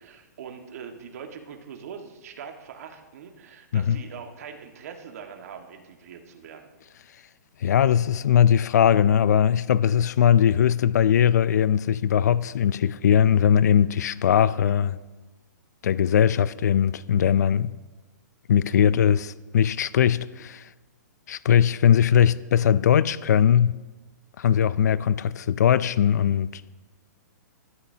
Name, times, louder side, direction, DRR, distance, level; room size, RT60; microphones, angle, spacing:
voice 1, 0.0-6.7, right 7 dB, 55° right, 1.7 m, -42 dB
voice 2, 7.6-15.0 15.8-17.7 18.5-20.6 21.3-23.8 24.4-26.6, left 9 dB, 60° left, 0.4 m, -20 dB
20.0 x 12.5 x 2.8 m
hypercardioid pair, 165°, 10 cm